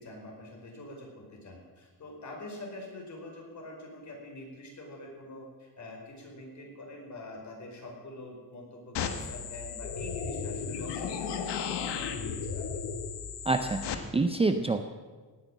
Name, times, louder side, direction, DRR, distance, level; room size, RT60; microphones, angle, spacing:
voice 1, 0.0-12.8, left 1 dB, 45° left, 0 dB, 4.8 m, -45 dB
sound 1, 8.9-13.9, left 6 dB, 75° left, 1.5 m, -35 dB
voice 2, 13.5-14.8, right 3 dB, 15° right, 7 dB, 0.6 m, -27 dB
17.5 x 9.5 x 7.5 m, 1.4 s
cardioid pair, 150°, 41 cm